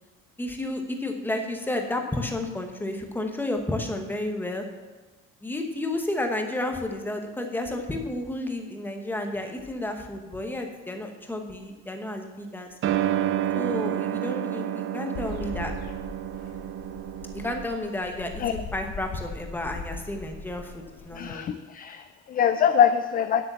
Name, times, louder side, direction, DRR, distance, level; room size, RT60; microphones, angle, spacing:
voice 1, 0.4-4.6 5.4-12.7 13.5-15.7 17.3-21.4, left 1 dB, 5° left, 4 dB, 1.2 m, -31 dB
sound 1, 12.8-17.7, right 11 dB, 45° right, 0.5 m, -29 dB
sound 2, 15.1-21.2, left 4 dB, 65° left, 1.8 m, -40 dB
voice 2, 21.1-23.4, left 8 dB, 30° left, 10 dB, 0.4 m, -23 dB
10.0 x 8.3 x 6.9 m, 1.2 s
cardioid pair, 160°, 29 cm